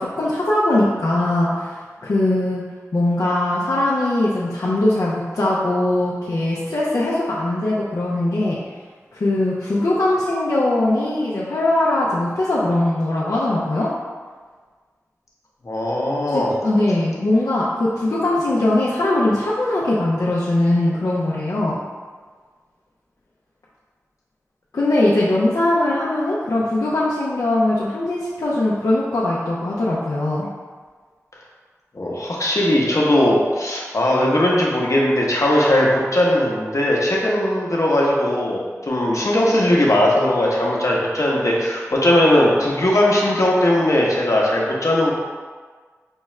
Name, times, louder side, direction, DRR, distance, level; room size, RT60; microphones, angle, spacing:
voice 1, 0.0-2.6 2.9-8.6 9.1-13.9 16.3-21.8 24.7-30.5, left 1 dB, 85° left, -7 dB, 0.5 m, -20 dB
voice 2, 15.6-16.5 31.9-45.1, left 1 dB, 65° left, -3 dB, 0.8 m, -18 dB
5.3 x 2.3 x 3.1 m, 1.5 s
wide cardioid pair, 45°, 6 cm